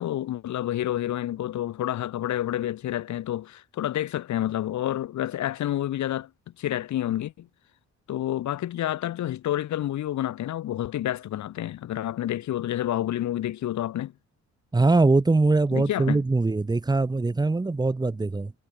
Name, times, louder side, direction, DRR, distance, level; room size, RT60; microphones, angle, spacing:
voice 1, 0.0-6.3 6.6-7.5 8.1-14.1 15.7-16.2, left 12 dB, 70° left, 2.7 m, -29 dB
voice 2, 14.7-18.5, right 3 dB, 15° right, 2.0 m, -22 dB
cardioid pair, 170°, 30 cm